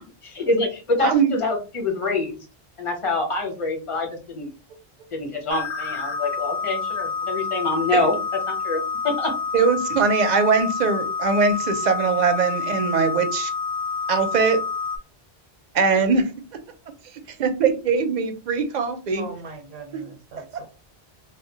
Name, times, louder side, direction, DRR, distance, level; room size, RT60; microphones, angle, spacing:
voice 1, 0.2-2.3 2.8-4.5 5.1-8.1 8.5-9.3, left 2 dB, 35° left, 2 dB, 0.7 m, -25 dB
voice 2, 1.0-1.3 7.9-8.1 9.5-13.5 14.1-14.6 15.7-16.2 17.4-19.2 19.9-20.0, right 5 dB, 55° right, 7 dB, 0.5 m, -21 dB
sound 1, 5.5-15.0, left 5 dB, 65° left, 0.7 m, -28 dB
voice 3, 19.2-20.6, right 4 dB, 85° right, 2 dB, 0.9 m, -39 dB
2.1 x 2.0 x 3.7 m, 0.33 s
omnidirectional pair, 1.0 m